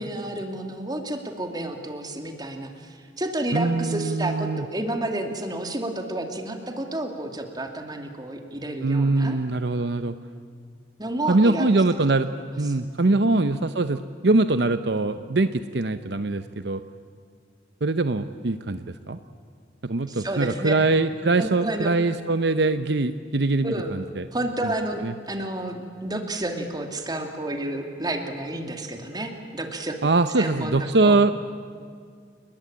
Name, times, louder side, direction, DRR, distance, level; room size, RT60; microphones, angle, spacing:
voice 1, 0.0-9.4 11.0-11.7 12.7-12.8 13.0-13.3 20.1-20.7 21.4-21.9 23.6-23.9 24.3-25.0 25.3-30.0 30.4-31.2, right 1 dB, 25° right, 4 dB, 2.5 m, -30 dB
voice 2, 3.5-4.7 8.8-10.1 11.3-12.3 12.6-16.8 17.8-19.2 19.8-24.3 24.6-24.7 25.0-25.1 30.0-31.3, right 2 dB, 65° right, 10 dB, 0.8 m, -22 dB
29.5 x 21.0 x 8.8 m, 2.1 s
head